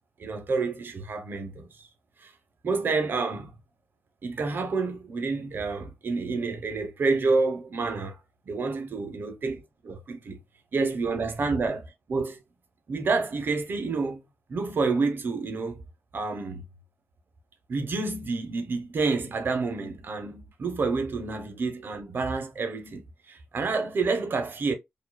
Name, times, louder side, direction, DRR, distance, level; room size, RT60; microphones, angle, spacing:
voice 1, 0.2-1.7 2.2-2.3 2.6-3.5 4.2-8.2 8.5-10.4 10.7-11.8 12.1-12.4 12.9-14.2 14.5-15.8 16.1-16.7 17.7-24.7, right 4 dB, 45° right, 1.0 m, -29 dB
4.8 x 2.6 x 2.3 m
wide cardioid pair, 150°, 5 cm